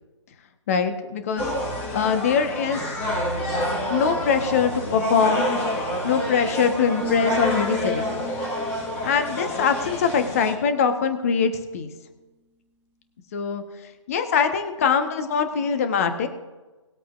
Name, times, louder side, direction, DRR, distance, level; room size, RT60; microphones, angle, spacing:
voice 1, 0.7-1.5 1.9-2.8 3.9-5.5 6.0-8.2 9.0-11.9 13.3-13.6 14.1-16.3, left 6 dB, 30° left, 7 dB, 1.2 m, -23 dB
sound 1, 1.4-10.6, left 1 dB, 10° left, 1.7 m, -28 dB
sound 2, 7.0-10.7, right 1 dB, 10° right, 1.0 m, -37 dB
20.0 x 8.3 x 2.6 m, 1.2 s
figure-of-eight pair, 145°, 16 cm